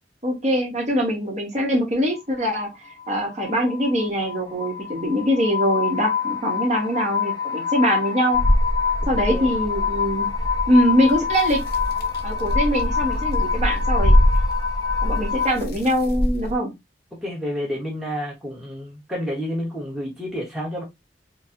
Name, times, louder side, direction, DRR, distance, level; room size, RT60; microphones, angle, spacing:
voice 1, 0.2-2.7 3.1-8.4 9.1-10.3 10.7-11.6 12.2-14.2 15.0-16.7, equal, 40° right, 1.4 m, -22 dB
sound 1, 2.1-15.5, left 6 dB, 25° left, 0.9 m, -27 dB
sound 2, 8.3-16.6, equal, 55° left, 0.6 m, -23 dB
voice 2, 17.2-20.8, equal, ahead, 1.1 m, -29 dB
4.7 x 2.2 x 2.6 m
head